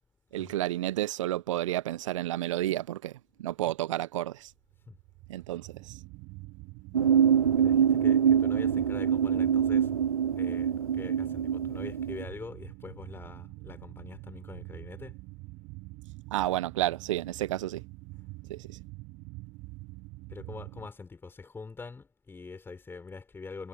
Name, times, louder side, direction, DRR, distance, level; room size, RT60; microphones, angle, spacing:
voice 1, 0.3-4.5 5.3-6.0 16.3-17.8 18.5-18.8, right 14 dB, 60° right, 1.1 m, -31 dB
sound 1, 4.5-20.9, right 23 dB, 40° right, 6.3 m, -46 dB
sound 2, 6.9-12.2, right 8 dB, 80° right, 0.7 m, -25 dB
voice 2, 7.6-9.9 10.4-15.2 20.3-23.7, left 4 dB, 10° left, 6.4 m, -44 dB
figure-of-eight pair, 105°, 18 cm